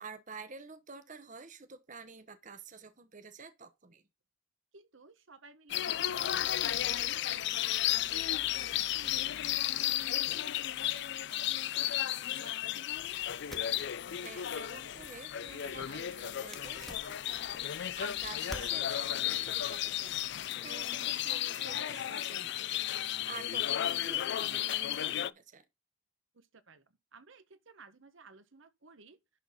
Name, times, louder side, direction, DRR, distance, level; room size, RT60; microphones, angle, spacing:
voice 1, 0.0-4.0 14.2-25.6, right 4 dB, 35° right, 0.9 m, -49 dB
voice 2, 4.7-9.8 10.3-13.1 26.3-29.2, right 4 dB, 65° right, 1.0 m, -57 dB
sound 1, 5.7-25.3, left 12 dB, 55° left, 0.4 m, -34 dB
sound 2, 12.9-20.5, equal, ahead, 1.1 m, -53 dB
11.0 x 4.0 x 5.6 m
head